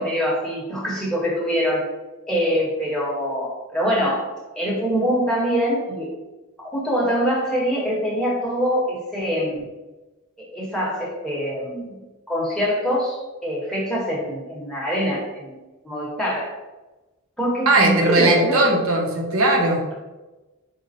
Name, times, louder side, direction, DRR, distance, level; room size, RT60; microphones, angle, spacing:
voice 1, 0.0-1.9 2.3-4.3 4.5-6.2 6.6-9.6 10.4-12.0 12.3-15.6 15.8-16.5 17.4-18.7, equal, 5° left, -5 dB, 0.9 m, -24 dB
voice 2, 17.7-19.8, right 2 dB, 75° right, 2 dB, 0.6 m, -18 dB
4.1 x 2.0 x 4.0 m, 1.1 s
head